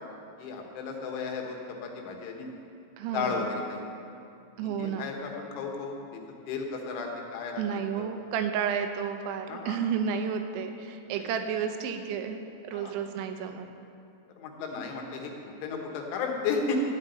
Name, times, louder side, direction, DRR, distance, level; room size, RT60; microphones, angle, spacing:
voice 1, 0.4-1.6 1.8-2.5 3.1-3.8 4.6-8.1 9.5-9.8 11.2-11.3 12.7-12.9 14.4-15.3 15.6-16.8, left 5 dB, 85° left, 1 dB, 3.7 m, -34 dB
voice 2, 3.0-3.5 4.6-5.0 7.6-13.7, right 7 dB, 85° right, 7 dB, 3.1 m, -31 dB
13.5 x 5.6 x 8.9 m, 2.5 s
omnidirectional pair, 5.4 m